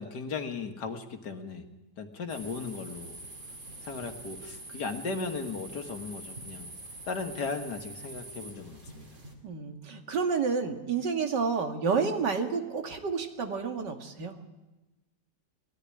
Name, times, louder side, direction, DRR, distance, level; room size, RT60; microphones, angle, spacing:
voice 1, 0.0-1.6 2.0-3.2 3.8-6.7 7.1-9.1, left 4 dB, 75° left, 6 dB, 2.2 m, -36 dB
sound 1, 2.3-9.3, right 2 dB, 45° right, 3.0 m, -45 dB
voice 2, 9.4-14.3, right 5 dB, 90° right, 4 dB, 2.5 m, -30 dB
20.0 x 14.0 x 9.8 m, 1.1 s
omnidirectional pair, 1.8 m